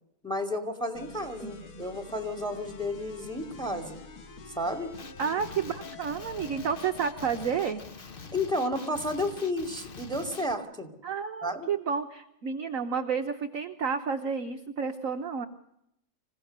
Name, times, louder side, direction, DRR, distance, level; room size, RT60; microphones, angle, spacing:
voice 1, 0.2-4.0 4.5-4.9 8.3-10.9 11.4-11.7, left 1 dB, ahead, 5 dB, 2.5 m, -32 dB
sound 1, 0.9-7.9, left 5 dB, 85° left, 2.7 m, -47 dB
voice 2, 1.4-1.8 5.2-7.8 11.0-15.5, right 6 dB, 50° right, 7 dB, 1.1 m, -31 dB
Male speech man speaking, 4.9-10.5, left 4 dB, 40° left, 0.8 m, -45 dB
26.0 x 16.5 x 6.7 m, 0.81 s
omnidirectional pair, 2.3 m